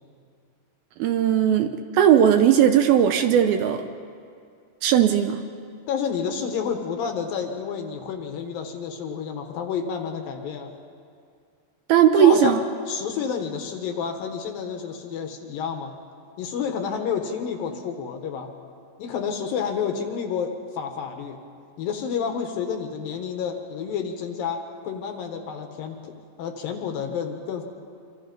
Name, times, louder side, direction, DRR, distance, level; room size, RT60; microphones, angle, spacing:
voice 1, 1.0-3.8 4.8-5.5 11.9-12.6, right 9 dB, 75° right, 7 dB, 2.4 m, -18 dB
voice 2, 5.9-10.7 12.2-12.6 12.9-15.9 16.4-18.5 19.0-21.4 21.8-27.6, left 6 dB, 65° left, 5 dB, 2.8 m, -30 dB
26.5 x 25.5 x 5.4 m, 2.3 s
omnidirectional pair, 4.8 m